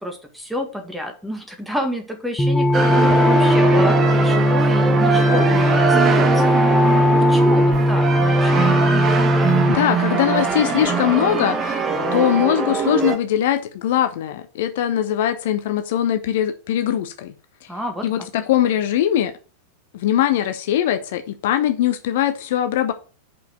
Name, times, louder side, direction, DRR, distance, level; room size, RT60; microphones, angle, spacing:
voice 1, 0.0-8.1 8.4-8.8 17.7-18.3, equal, ahead, 3 dB, 1.9 m, -30 dB
sound 1, 2.4-9.8, left 1 dB, 15° left, 1.2 m, -17 dB
sound 2, 2.7-13.2, right 5 dB, 25° right, 1.5 m, -21 dB
voice 2, 9.7-11.8 12.1-17.3 17.6-17.7 18.0-19.3 19.9-22.9, left 11 dB, 55° left, 9 dB, 0.8 m, -21 dB
6.4 x 5.5 x 6.5 m, 0.37 s
figure-of-eight pair, 90°, 0 cm